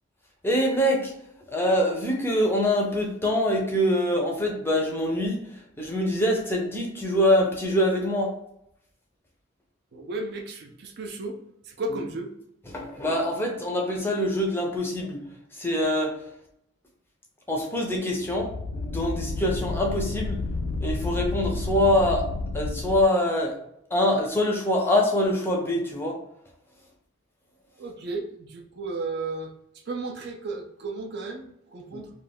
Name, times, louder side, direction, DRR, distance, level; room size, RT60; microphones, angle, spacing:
voice 1, 0.4-1.1 1.5-8.3 11.9-12.0 12.7-15.2 15.5-16.3 17.5-20.4 20.8-22.3 22.5-23.5 23.9-26.2 31.9-32.0, left 1 dB, 10° left, 0 dB, 0.5 m, -24 dB
voice 2, 9.9-11.4 11.6-12.3 27.8-32.1, right 3 dB, 55° right, 3 dB, 0.4 m, -34 dB
sound 1, 18.2-23.0, left 3 dB, 85° left, 0.3 m, -31 dB
2.4 x 2.2 x 3.4 m, 0.75 s
head